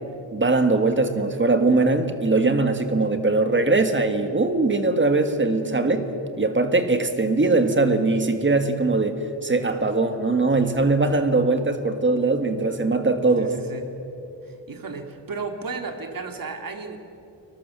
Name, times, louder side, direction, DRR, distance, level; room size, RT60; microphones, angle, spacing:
voice 1, 0.3-6.1 6.4-13.5, right 3 dB, 25° right, 8 dB, 1.7 m, -21 dB
voice 2, 13.4-14.0 14.4-17.0, right 4 dB, 50° right, 5 dB, 2.4 m, -34 dB
30.0 x 20.5 x 6.9 m, 3.0 s
wide cardioid pair, 155°, 43 cm